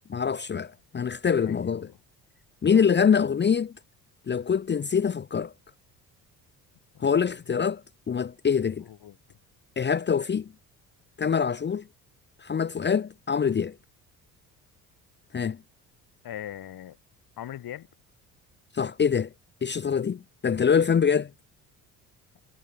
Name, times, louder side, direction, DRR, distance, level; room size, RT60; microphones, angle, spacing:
voice 1, 0.1-1.9 2.6-3.7 4.3-5.5 7.0-7.8 8.1-8.8 9.8-10.5 11.2-11.8 12.4-13.7 15.3-15.6 18.7-19.3 19.6-21.3, left 7 dB, 20° left, 0.8 m, -24 dB
voice 2, 1.4-2.0 2.6-3.0 6.9-7.1 8.9-9.2 16.2-17.0 17.4-17.9, left 11 dB, 45° left, 3.0 m, -40 dB
figure-of-eight pair, 50°, 48 cm